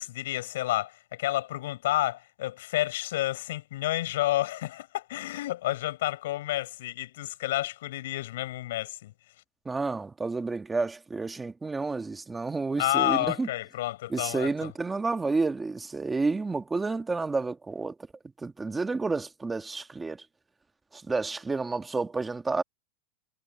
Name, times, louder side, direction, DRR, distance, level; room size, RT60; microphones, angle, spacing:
voice 1, 0.0-9.1 12.8-14.7, left 15 dB, 70° left, 7.4 m, -30 dB
voice 2, 9.6-13.5 14.1-17.9 18.4-20.2 20.9-22.6, right 3 dB, 10° right, 1.4 m, -30 dB
supercardioid pair, 165°, 0 cm